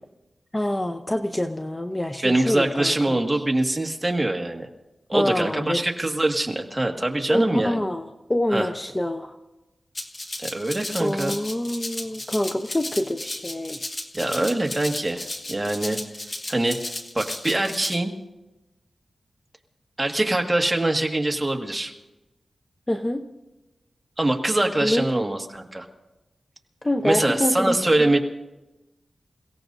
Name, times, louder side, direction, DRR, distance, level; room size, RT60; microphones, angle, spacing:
voice 1, 0.5-3.2 5.1-5.8 7.3-9.3 11.0-13.8 22.9-23.2 24.8-25.1 26.8-28.2, left 1 dB, 20° left, 5 dB, 0.7 m, -26 dB
voice 2, 2.2-4.7 5.1-7.8 8.5-8.7 10.4-11.4 14.1-16.0 16.5-18.1 20.0-21.9 24.2-25.9 27.0-28.2, right 2 dB, 15° right, 2 dB, 1.8 m, -23 dB
Rattle (instrument), 9.9-17.9, left 2 dB, 40° left, 1.6 m, -34 dB
28.5 x 17.0 x 2.7 m, 1.0 s
wide cardioid pair, 90°, 0 cm